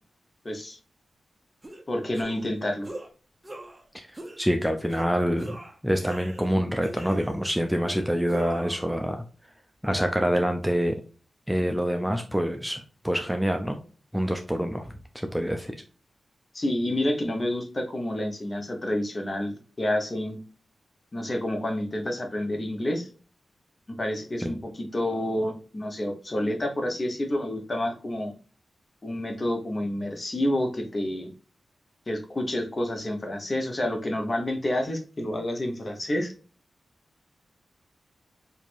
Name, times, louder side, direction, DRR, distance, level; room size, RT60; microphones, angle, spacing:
voice 1, 0.4-0.8 1.9-2.9 16.5-20.4 21.1-23.1 23.9-28.3 29.0-31.3 32.1-36.3, left 1 dB, 35° left, 3 dB, 1.2 m, -29 dB
male pain sound effects, 1.6-1.8 2.1-2.5 2.8-3.1 3.4-3.8 4.1-4.4 4.9-5.1 5.4-6.5 6.8-7.4 7.9-8.8, right 1 dB, 20° right, 1.0 m, -41 dB
voice 2, 4.4-5.6 5.8-9.2 9.8-11.0 11.5-13.8 14.1-15.7 24.4-24.5, equal, 5° right, 5 dB, 0.5 m, -26 dB
4.6 x 2.8 x 2.6 m, 0.37 s
cardioid pair, 75°, 0 cm